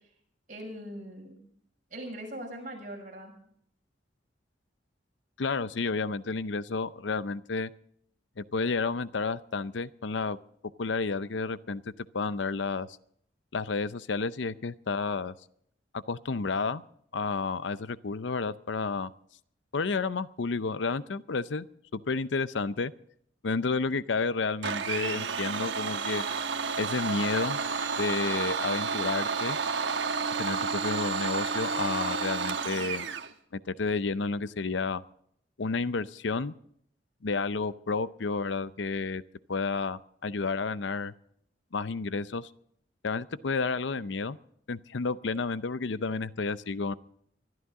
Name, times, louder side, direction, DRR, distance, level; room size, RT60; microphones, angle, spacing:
voice 1, 0.5-1.4 1.9-3.3, right 1 dB, 45° right, 0 dB, 6.1 m, -40 dB
voice 2, 5.4-7.7 8.4-10.4 10.8-11.8 12.1-12.9 13.5-15.3 16.1-16.8 17.1-19.1 19.7-21.7 21.9-22.9 23.4-26.2 26.8-27.6 28.0-29.6 30.4-33.1 33.5-35.0 35.6-36.5 37.2-39.2 39.5-41.1 41.7-42.5 43.0-44.4 44.7-46.9, left 4 dB, 75° left, 16 dB, 0.6 m, -31 dB
Domestic sounds home sounds, 24.6-33.3, right 5 dB, 75° right, 1.2 m, -31 dB
24.0 x 12.5 x 3.7 m, 0.68 s
head